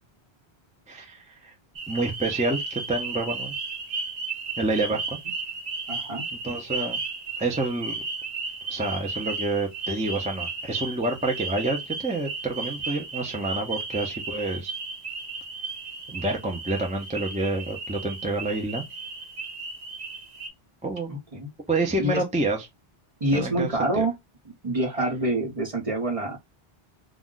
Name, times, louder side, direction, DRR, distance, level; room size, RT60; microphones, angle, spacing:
voice 1, 0.9-1.5 1.9-3.5 4.6-5.2 6.3-7.0 7.4-8.0 8.7-14.7 16.1-18.8 20.8-21.2 21.7-22.6 23.3-24.0, right 2 dB, 10° right, 0.3 m, -28 dB
sound 1, 1.8-20.5, right 4 dB, 80° right, 1.0 m, -34 dB
voice 2, 5.9-6.2 21.1-21.5 22.0-22.2 23.2-24.1 24.6-26.4, right 1 dB, 35° right, 1.0 m, -26 dB
2.3 x 2.2 x 3.7 m
omnidirectional pair, 1.0 m